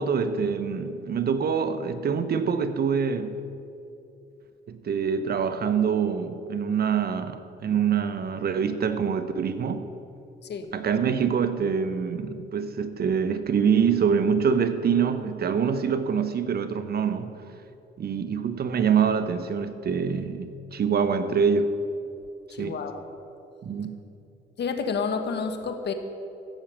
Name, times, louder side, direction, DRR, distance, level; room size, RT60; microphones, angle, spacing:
voice 1, 0.0-3.4 4.7-9.9 10.7-17.3 18.0-21.7 22.6-22.8 23.6-24.0, right 6 dB, 50° right, 9 dB, 1.0 m, -25 dB
voice 2, 22.5-23.0 24.6-25.9, left 5 dB, 60° left, 7 dB, 1.4 m, -30 dB
14.5 x 7.2 x 8.6 m, 2.7 s
cardioid pair, 90°, 20 cm